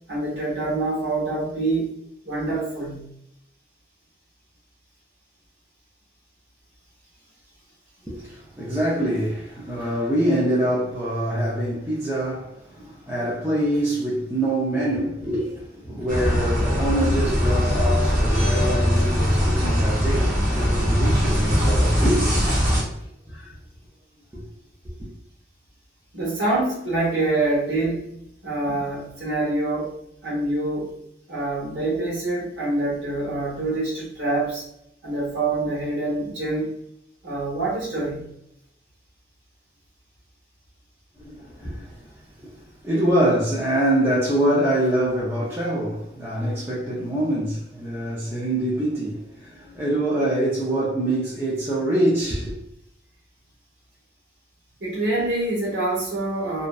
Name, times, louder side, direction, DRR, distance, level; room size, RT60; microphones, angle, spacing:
voice 1, 0.1-1.9 2.2-3.1 26.1-30.0 30.2-31.0 31.3-34.6 35.0-36.7 37.2-38.2 54.8-56.7, right 2 dB, 70° right, 1.0 m, -25 dB
voice 2, 8.0-22.4 23.3-23.5 41.2-42.1 42.4-42.5 42.8-52.5, right 1 dB, 15° right, 0.4 m, -25 dB
sound 1, 16.1-22.8, equal, 40° right, 1.0 m, -21 dB
2.6 x 2.1 x 2.3 m
head